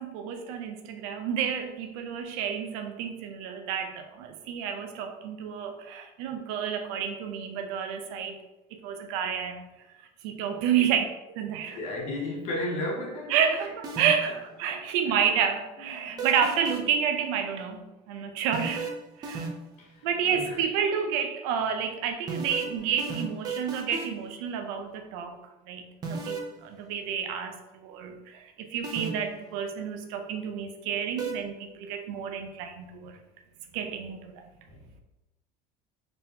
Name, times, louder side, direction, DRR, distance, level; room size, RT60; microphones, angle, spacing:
voice 1, 0.0-8.4 8.7-9.6 10.2-11.8 13.3-18.9 19.2-19.5 20.0-25.4 25.7-33.2 33.7-34.5, right 7 dB, 80° right, 0.6 m, -30 dB
voice 2, 11.6-13.7 14.2-14.4 14.6-15.2 15.8-16.3 19.8-20.6 21.6-21.7 22.5-22.9 34.7-34.9, left 1 dB, 45° left, 1.0 m, -36 dB
sound 1, 13.8-14.4 16.2-17.0 18.5-19.8 22.3-24.3 26.0-26.5 28.8-29.4 31.2-31.3, right 4 dB, 25° right, 0.6 m, -34 dB
4.0 x 3.6 x 2.8 m
cardioid pair, 165°, 16 cm